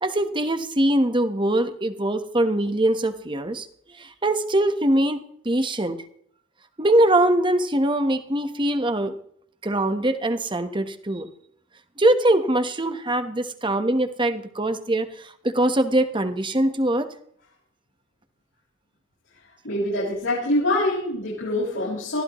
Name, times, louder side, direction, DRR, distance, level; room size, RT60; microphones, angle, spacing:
voice 1, 0.0-6.0 6.8-9.2 9.6-11.3 12.0-17.1, right 1 dB, 25° right, 9 dB, 1.3 m, -22 dB
voice 2, 19.6-22.2, left 1 dB, 90° left, -8 dB, 6.8 m, -24 dB
23.5 x 15.0 x 3.2 m, 0.66 s
head